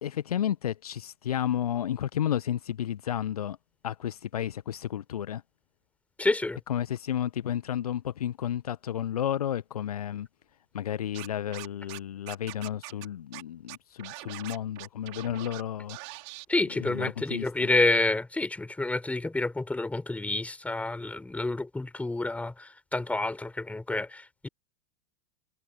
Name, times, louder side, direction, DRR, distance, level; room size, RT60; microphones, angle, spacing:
voice 1, 0.0-3.6 3.8-5.4 6.7-10.3 10.7-16.0 16.8-17.7, left 10 dB, 65° left, 1.0 m, -32 dB
voice 2, 6.2-6.6 16.5-24.5, left 2 dB, 5° left, 4.2 m, -29 dB
Scratching (performance technique), 11.1-12.0 12.3-13.0 13.3-13.4 13.7-15.6 15.9-16.4, right 31 dB, 50° right, 4.7 m, -42 dB
figure-of-eight pair, 90°, 20 cm